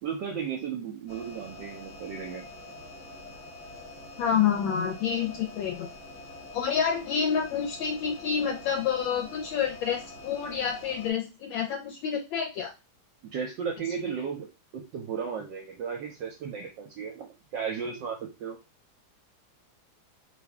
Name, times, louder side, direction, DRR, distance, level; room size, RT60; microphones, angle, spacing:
voice 1, 0.0-2.5 13.3-14.5 14.7-18.6, right 6 dB, 70° right, 2 dB, 1.2 m, -35 dB
sound 1, 1.1-11.1, left 2 dB, 45° left, 0.7 m, -45 dB
voice 2, 4.2-5.9 6.5-12.7, left 7 dB, 75° left, 2 dB, 1.2 m, -28 dB
3.5 x 2.6 x 3.4 m, 0.27 s
omnidirectional pair, 2.4 m